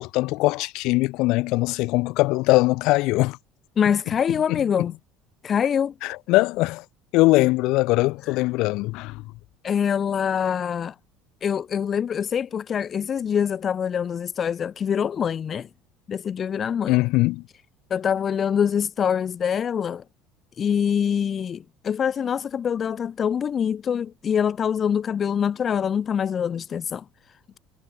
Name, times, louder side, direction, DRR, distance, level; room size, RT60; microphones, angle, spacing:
voice 1, 0.0-3.4 4.5-4.6 6.0-6.8 7.1-9.2 16.9-17.4, left 21 dB, 60° left, 1.8 m, -21 dB
voice 2, 3.8-4.9 5.4-5.9 8.2-8.5 9.6-11.0 11.4-15.7 16.1-17.0 17.9-20.0 20.6-27.6, left 8 dB, 25° left, 0.6 m, -25 dB
cardioid pair, 165°, 0 cm